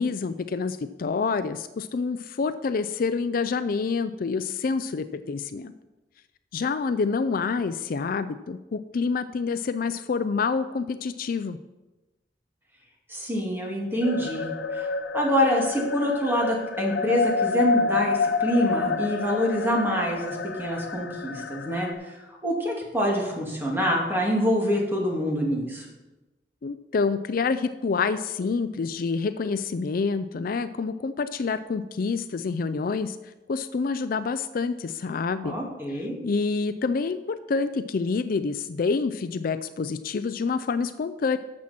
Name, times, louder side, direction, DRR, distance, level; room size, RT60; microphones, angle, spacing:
voice 1, 0.0-5.7 6.5-11.6 26.6-33.2 33.5-35.6 36.2-41.4, left 4 dB, 55° left, 12 dB, 0.4 m, -27 dB
voice 2, 13.1-14.9 15.1-22.1 22.4-25.9 35.4-36.2, equal, 15° right, -2 dB, 2.3 m, -26 dB
sound 1, 14.0-21.9, left 4 dB, 90° left, 0.8 m, -28 dB
12.0 x 7.4 x 4.3 m, 1.1 s
head